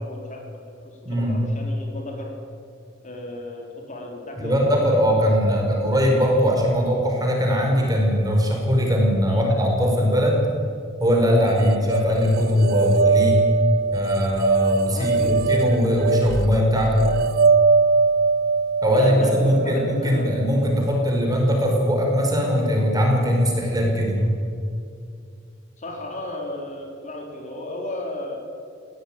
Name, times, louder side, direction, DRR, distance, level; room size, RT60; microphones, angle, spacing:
voice 1, 0.0-2.3 3.0-4.9 5.5-5.7 9.3-9.5 14.9-15.5 18.9-20.3 24.2-24.4 25.8-28.4, left 1 dB, 40° left, 1 dB, 4.1 m, -34 dB
voice 2, 1.0-1.4 4.4-10.4 11.0-13.4 13.9-17.1 18.8-24.2, equal, 20° right, 0 dB, 5.2 m, -20 dB
sound 1, 11.6-20.7, right 4 dB, 50° right, 0.5 m, -22 dB
21.0 x 17.5 x 9.1 m, 2.4 s
head